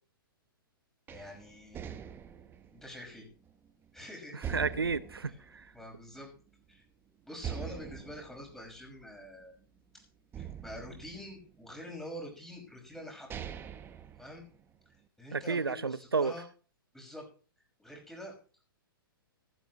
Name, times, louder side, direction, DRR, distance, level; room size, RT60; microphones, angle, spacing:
voice 1, 1.1-2.0 2.7-3.3 3.9-4.4 5.3-5.4 5.7-6.3 6.7-6.8 7.2-9.5 9.9-10.0 10.4-13.3 14.2-14.5 15.2-16.4 16.9-17.2 17.8-18.4, equal, 5° left, 6.0 m, -46 dB
sound 1, 1.1-3.9 4.4-6.4 6.7-6.8 7.4-9.8 10.3-11.9 12.7-12.8 13.1-14.9, right 8 dB, 15° right, 1.2 m, -44 dB
voice 2, 4.5-5.7 15.3-16.3, right 4 dB, 85° right, 0.7 m, -31 dB
16.0 x 13.5 x 3.1 m
figure-of-eight pair, 115°, 12 cm